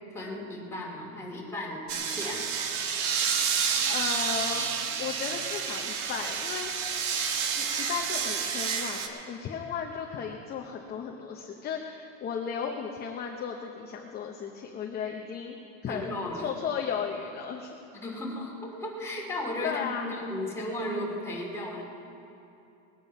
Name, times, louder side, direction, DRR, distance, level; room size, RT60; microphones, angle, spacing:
voice 1, 0.1-2.5 15.9-16.5 18.0-21.8, left 1 dB, 5° left, -4 dB, 2.6 m, -35 dB
sound 1, 1.9-9.1, right 6 dB, 60° right, 1.3 m, -29 dB
voice 2, 3.5-6.7 7.6-15.6 15.8-17.8 19.6-20.2, left 7 dB, 25° left, 2 dB, 0.8 m, -35 dB
20.0 x 9.0 x 5.5 m, 2.8 s
supercardioid pair, 145°, 40 cm